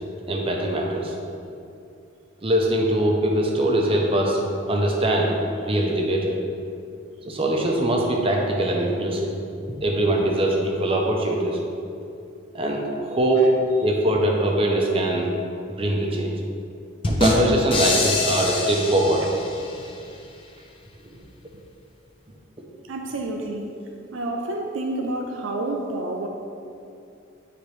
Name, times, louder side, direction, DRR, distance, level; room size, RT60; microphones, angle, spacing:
voice 1, 0.3-1.1 2.4-4.4 4.7-5.3 5.6-6.4 7.3-9.3 9.8-11.6 12.5-13.4 13.8-15.3 15.7-16.3 17.1-19.2, right 1 dB, 30° right, 0 dB, 0.7 m, -22 dB
sound 1, 17.0-19.9, left 2 dB, 25° left, 0.6 m, -25 dB
voice 2, 22.9-23.7 24.1-26.3, right 2 dB, 80° right, 2 dB, 0.5 m, -29 dB
8.4 x 3.9 x 3.2 m, 2.6 s
head